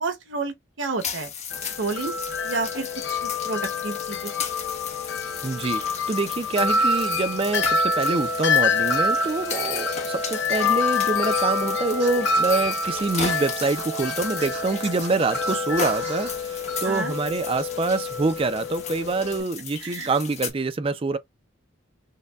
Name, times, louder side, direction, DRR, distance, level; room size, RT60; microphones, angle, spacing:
voice 1, 0.0-1.3 1.8-2.1 2.4-4.3 16.8-17.1 19.8-20.1, right 3 dB, 90° right, 0.9 m, -30 dB
sound 1, 1.0-20.5, left 7 dB, 35° left, 0.9 m, -36 dB
Wind chime, 1.5-19.4, left 3 dB, 70° left, 0.8 m, -27 dB
voice 2, 5.4-21.2, right 3 dB, 30° right, 0.4 m, -26 dB
Scratching (performance technique), 12.0-16.4, right 3 dB, 60° right, 2.2 m, -38 dB
6.5 x 2.2 x 2.3 m
head